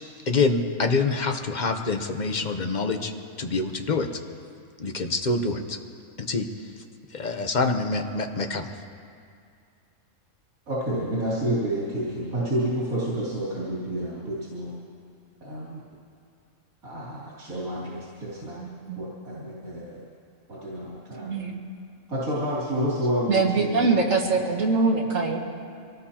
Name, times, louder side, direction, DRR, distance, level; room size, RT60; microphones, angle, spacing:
voice 1, 0.3-3.1 3.4-4.1 4.8-5.8 6.2-6.5 7.1-8.7, left 3 dB, 40° left, 5 dB, 0.9 m, -26 dB
voice 2, 10.7-14.7 15.4-15.8 16.8-18.6 19.0-20.0 20.5-21.5 22.1-24.6, right 1 dB, 90° right, -9 dB, 3.4 m, -30 dB
voice 3, 18.6-19.0 21.2-21.6 23.3-25.4, right 4 dB, 70° right, -1 dB, 2.1 m, -23 dB
25.0 x 18.0 x 2.9 m, 2.4 s
omnidirectional pair, 1.4 m